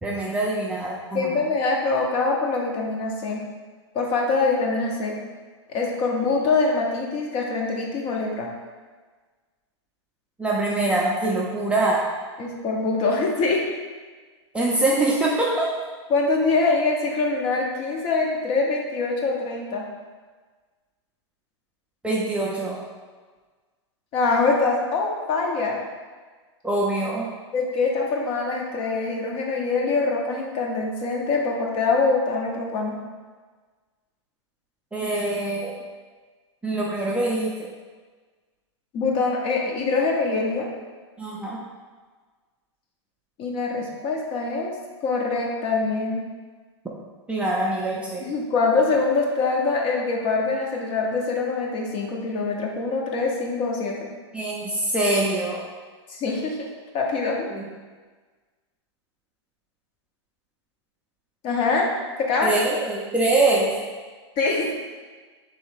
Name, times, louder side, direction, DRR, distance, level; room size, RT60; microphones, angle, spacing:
voice 1, 0.0-1.3 10.4-12.0 14.5-15.7 22.0-22.8 26.6-27.3 34.9-35.7 36.6-37.7 41.2-41.6 47.3-48.3 54.3-55.6 57.5-57.6 62.4-63.7, right 2 dB, 5° right, -5 dB, 0.5 m, -24 dB
voice 2, 1.1-3.4 3.9-5.2 5.7-8.5 12.4-13.7 16.1-19.9 24.1-25.8 27.5-33.0 38.9-40.7 43.4-44.7 45.0-46.2 48.2-54.1 56.1-56.7 56.9-57.5 61.4-61.9 62.2-62.5 64.4-64.7, left 3 dB, 35° left, 0 dB, 0.8 m, -24 dB
3.2 x 3.2 x 4.7 m, 1.4 s
hypercardioid pair, 130°, 15 cm